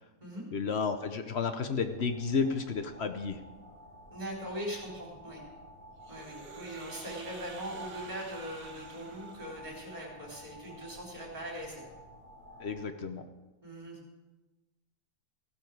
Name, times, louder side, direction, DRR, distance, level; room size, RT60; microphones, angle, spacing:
voice 1, 0.5-3.4 12.6-13.3, left 5 dB, 55° left, 9 dB, 0.9 m, -32 dB
sound 1, 1.6-12.8, right 1 dB, 70° left, 5.6 m, -51 dB
voice 2, 4.1-5.4 6.1-11.8 13.6-14.0, equal, 30° right, -2 dB, 4.1 m, -41 dB
Dragon Roar, 6.0-10.1, right 4 dB, 65° right, 1.7 m, -50 dB
15.5 x 12.0 x 4.7 m, 1.1 s
omnidirectional pair, 1.6 m